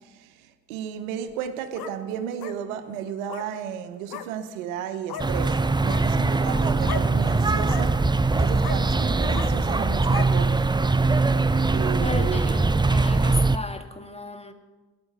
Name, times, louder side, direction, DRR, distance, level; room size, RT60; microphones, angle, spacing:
voice 1, 0.7-8.0 8.3-10.7 11.7-12.5, right 8 dB, 85° right, 0.9 m, -33 dB
sound 1, 1.3-1.9 2.4-2.6 3.2-3.5 4.1-4.3 5.1-5.3 5.8-6.0 6.8-7.1 7.6-7.9 8.6-8.8 9.3-9.5 10.1-10.3, left 10 dB, 60° left, 1.1 m, -35 dB
sound 2, 5.2-13.6, right 3 dB, 10° right, 0.6 m, -22 dB
voice 2, 6.2-6.6 12.0-14.5, left 2 dB, 15° left, 1.7 m, -35 dB
13.5 x 11.5 x 6.7 m
hypercardioid pair, 50°, 40 cm